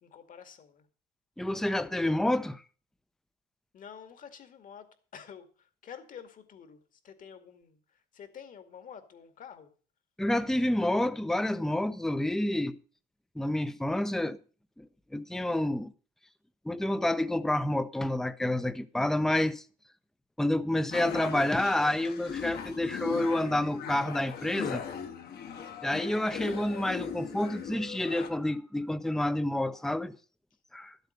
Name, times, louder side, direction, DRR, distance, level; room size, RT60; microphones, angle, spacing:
voice 1, 0.0-0.9 3.7-9.7, left 7 dB, 50° left, 2.3 m, -49 dB
voice 2, 1.4-2.6 10.2-12.8 13.4-14.4 14.8-14.9 15.1-15.9 16.6-19.6 20.4-24.8 25.8-30.2 30.7-31.0, left 1 dB, ahead, 0.7 m, -29 dB
sound 1, 20.9-28.3, left 7 dB, 70° left, 2.4 m, -39 dB
12.5 x 8.0 x 6.6 m
cardioid pair, 110°, 17 cm